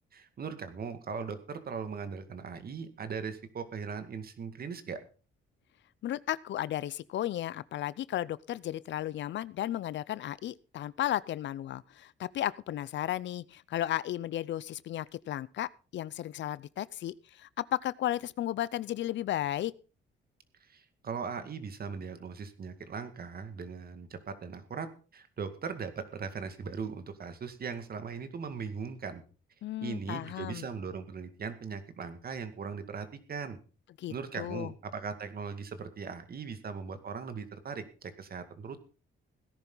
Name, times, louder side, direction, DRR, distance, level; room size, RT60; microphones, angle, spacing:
voice 1, 0.1-5.0 20.6-29.2 29.8-33.6 34.1-38.8, right 5 dB, 50° right, 10 dB, 2.1 m, -39 dB
voice 2, 6.0-19.7 29.6-30.7 34.0-34.7, left 12 dB, 65° left, 20 dB, 0.6 m, -34 dB
17.0 x 10.5 x 4.0 m, 0.35 s
cardioid pair, 90°, 20 cm